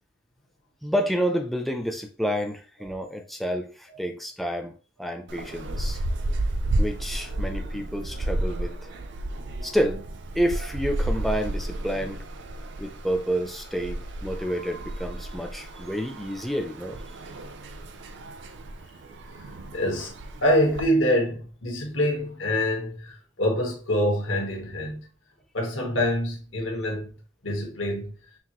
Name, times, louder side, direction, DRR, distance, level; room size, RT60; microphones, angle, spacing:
voice 1, 0.8-4.7 5.0-6.0 6.8-8.7 9.6-10.0 10.3-12.2 12.8-17.0, equal, ahead, 0.5 m, -29 dB
sound 1, 5.3-20.8, right 1 dB, 60° right, 0.5 m, -32 dB
voice 2, 19.7-25.1 25.5-27.1 27.4-28.1, equal, 75° left, 1.3 m, -26 dB
5.8 x 2.4 x 3.0 m
head